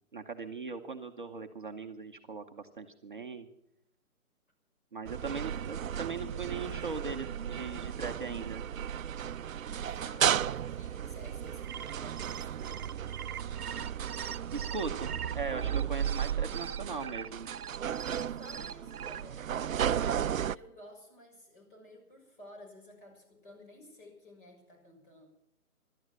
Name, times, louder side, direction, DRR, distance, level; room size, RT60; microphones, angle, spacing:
voice 1, 0.1-3.5 4.9-8.7 14.5-17.5, right 4 dB, 35° right, 3 dB, 0.8 m, -39 dB
sound 1, 5.1-20.6, right 9 dB, 65° right, 0.5 m, -34 dB
voice 2, 9.7-12.9 18.1-25.3, left 1 dB, 35° left, 1 dB, 6.6 m, -53 dB
sound 2, 11.5-19.2, right 8 dB, 85° right, 0.8 m, -43 dB
17.0 x 12.5 x 6.3 m, 0.82 s
hypercardioid pair, 170°, 44 cm